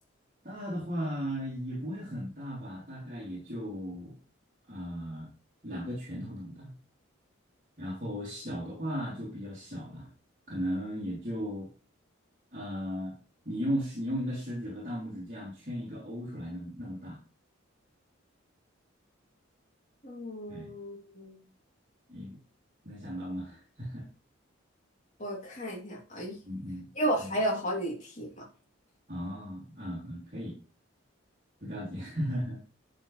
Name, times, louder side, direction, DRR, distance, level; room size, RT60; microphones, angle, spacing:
voice 1, 0.4-4.1 4.7-5.3 5.6-6.7 7.8-10.1 10.5-11.7 12.5-13.1 13.5-17.2 20.5-20.7 22.1-22.4 22.8-24.1 26.5-26.9 27.2-27.4 29.1-30.6 31.6-32.6, equal, 40° right, -7 dB, 3.4 m, -36 dB
voice 2, 20.0-21.4 25.2-26.3 26.9-28.4, right 1 dB, 35° left, -2 dB, 3.1 m, -33 dB
11.5 x 5.6 x 3.3 m, 0.37 s
head